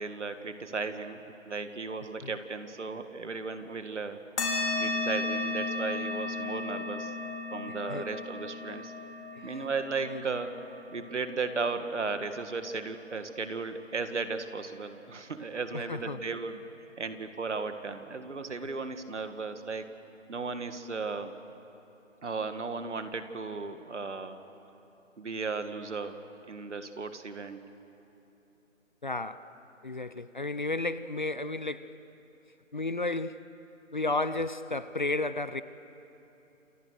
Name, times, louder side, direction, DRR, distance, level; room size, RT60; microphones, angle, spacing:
voice 1, 0.0-4.2 4.8-7.2 7.5-8.9 9.4-10.5 10.9-16.6 17.0-19.9 20.3-21.3 22.2-24.4 25.2-26.2 26.5-27.6, right 4 dB, 65° right, 9 dB, 2.0 m, -35 dB
sound 1, 4.4-13.3, left 3 dB, 60° left, 4.7 m, -35 dB
voice 2, 15.7-16.2 29.0-29.5 29.8-31.9 32.7-33.5 33.9-35.6, left 2 dB, 40° left, 14 dB, 0.6 m, -33 dB
29.0 x 28.0 x 6.5 m, 2.9 s
figure-of-eight pair, 165°, 39 cm